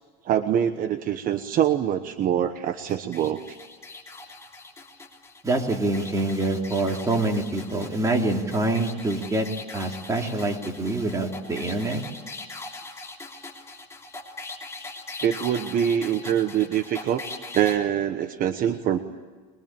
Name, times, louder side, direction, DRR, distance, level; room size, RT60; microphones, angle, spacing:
voice 1, 0.2-3.6 15.2-17.3 17.5-19.0, right 9 dB, 40° right, 8 dB, 1.2 m, -24 dB
sound 1, 2.9-17.8, left 3 dB, 15° left, 3.5 m, -41 dB
voice 2, 5.4-9.5 9.7-12.0, right 2 dB, 15° right, 1 dB, 3.2 m, -25 dB
23.0 x 22.5 x 9.0 m, 1.4 s
cardioid pair, 140°, 21 cm